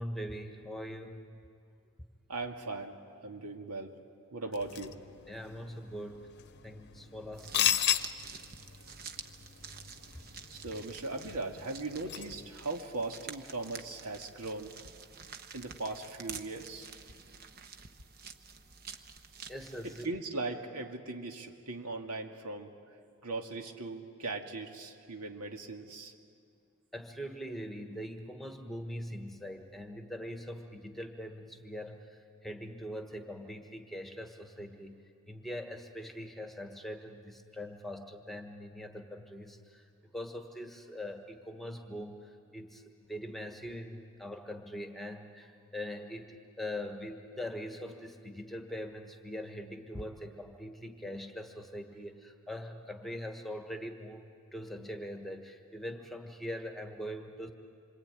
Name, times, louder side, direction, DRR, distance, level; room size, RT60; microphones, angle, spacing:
voice 1, 0.0-1.4 5.3-6.2 6.6-7.9 19.5-20.1 26.9-39.8 40.1-54.2 54.5-57.5, equal, ahead, 4 dB, 1.4 m, -42 dB
voice 2, 2.3-4.0 4.3-5.0 10.5-14.7 15.5-16.9 19.8-22.8 23.2-26.1, right 3 dB, 90° right, 3 dB, 2.3 m, -39 dB
sound 1, 4.5-12.5, left 10 dB, 50° left, 0.8 m, -36 dB
sound 2, 7.3-20.1, right 6 dB, 45° right, 1.1 m, -49 dB
27.0 x 24.0 x 9.1 m, 2.3 s
head